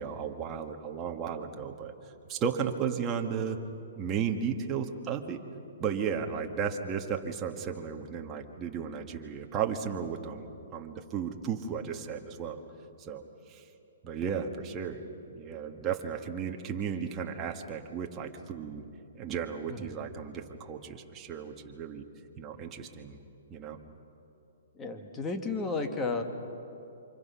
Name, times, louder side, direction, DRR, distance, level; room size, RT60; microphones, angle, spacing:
voice 1, 0.0-1.9 2.3-3.6 3.9-5.4 5.8-10.5 10.7-12.6 13.0-13.2 13.5-13.6 14.0-15.0 15.4-18.8 19.1-22.0 22.4-23.2 23.5-23.8, right 7 dB, 20° right, 3 dB, 1.5 m, -34 dB
voice 2, 24.8-26.2, left 3 dB, 15° left, 5 dB, 1.8 m, -33 dB
28.0 x 26.0 x 5.8 m, 2.9 s
hypercardioid pair, 155°, 0 cm